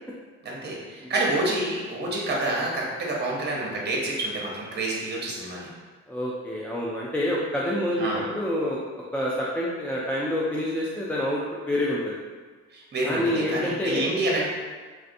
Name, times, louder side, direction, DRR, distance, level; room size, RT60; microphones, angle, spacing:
voice 1, 0.4-5.7 8.0-8.2 12.7-14.4, right 2 dB, 35° right, -3 dB, 0.8 m, -28 dB
voice 2, 6.1-12.2 13.1-14.1, left 1 dB, 5° left, -5 dB, 0.3 m, -27 dB
3.2 x 2.6 x 2.5 m, 1.5 s
cardioid pair, 90°, 30 cm